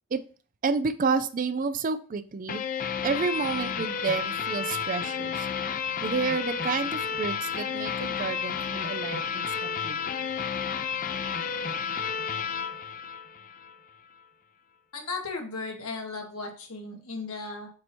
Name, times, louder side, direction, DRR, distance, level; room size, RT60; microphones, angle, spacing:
voice 1, 0.6-2.6 3.0-5.5 6.0-10.0, right 4 dB, 40° right, 12 dB, 0.4 m, -30 dB
sound 1, 2.5-13.8, left 6 dB, 40° left, 0.4 m, -31 dB
voice 2, 14.9-17.7, left 3 dB, 85° left, 1 dB, 1.6 m, -36 dB
7.6 x 2.8 x 4.5 m, 0.38 s
head